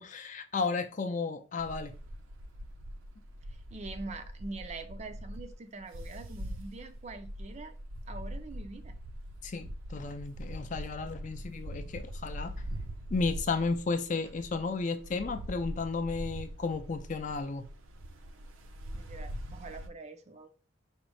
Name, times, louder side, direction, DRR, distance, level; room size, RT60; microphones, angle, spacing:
voice 1, 0.0-1.9 9.4-12.5 13.1-17.7, left 4 dB, 40° left, 0.4 m, -33 dB
sound 1, 1.6-19.9, equal, 75° right, 0.6 m, -42 dB
voice 2, 3.5-7.7 8.1-8.9 18.9-20.5, right 3 dB, 35° right, 0.4 m, -44 dB
5.1 x 2.1 x 4.6 m
head